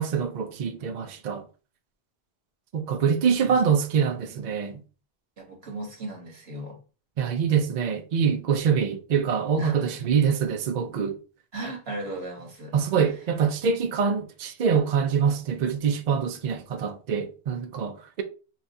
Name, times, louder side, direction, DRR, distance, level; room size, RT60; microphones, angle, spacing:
voice 1, 0.0-1.4 2.7-4.8 7.2-11.2 12.7-18.2, right 6 dB, 55° right, 0.5 m, -25 dB
voice 2, 5.4-6.8 9.6-10.0 11.5-12.8, right 2 dB, 75° right, 1.4 m, -37 dB
5.5 x 2.3 x 2.6 m
omnidirectional pair, 1.1 m